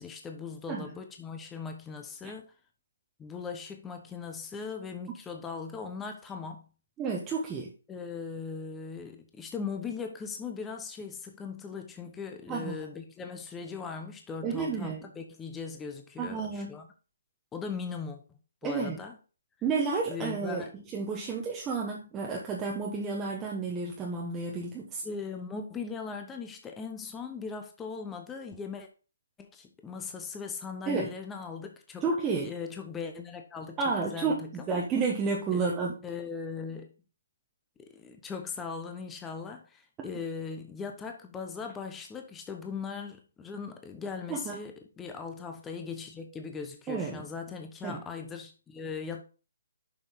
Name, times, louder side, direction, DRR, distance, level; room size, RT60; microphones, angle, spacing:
voice 1, 0.0-2.5 3.2-6.6 7.9-16.9 17.5-18.2 18.6-19.2 20.1-20.7 25.0-28.9 29.4-32.0 32.4-34.5 35.5-35.6 36.0-36.9 37.8-49.2, left 5 dB, 10° left, 0.8 m, -39 dB
voice 2, 7.0-7.7 12.5-12.7 14.4-15.1 16.2-16.8 18.6-19.0 19.6-25.0 30.9-31.1 32.0-32.5 33.8-36.0 40.0-40.1 44.3-44.6 46.9-47.2 47.8-48.0, right 4 dB, 15° right, 1.0 m, -31 dB
6.9 x 5.5 x 3.9 m
hypercardioid pair, 155°, 0 cm